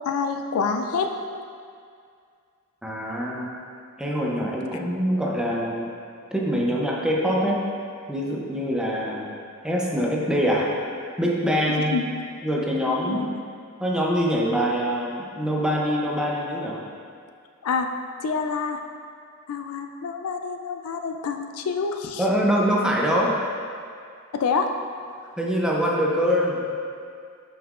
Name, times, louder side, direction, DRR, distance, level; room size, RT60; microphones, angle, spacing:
voice 1, 0.1-1.1 11.9-12.0 12.8-13.3 17.6-17.9 18.2-18.8 19.5-22.3 24.3-24.7 25.2-25.3, left 5 dB, 70° left, 5 dB, 0.4 m, -27 dB
voice 2, 2.8-3.5 4.0-5.9 6.3-7.6 8.1-9.3 9.6-10.7 11.0-12.0 12.4-13.3 13.8-16.8 22.2-23.4 25.4-26.6, equal, 5° right, -4 dB, 0.7 m, -24 dB
7.5 x 5.4 x 2.5 m, 2.3 s
head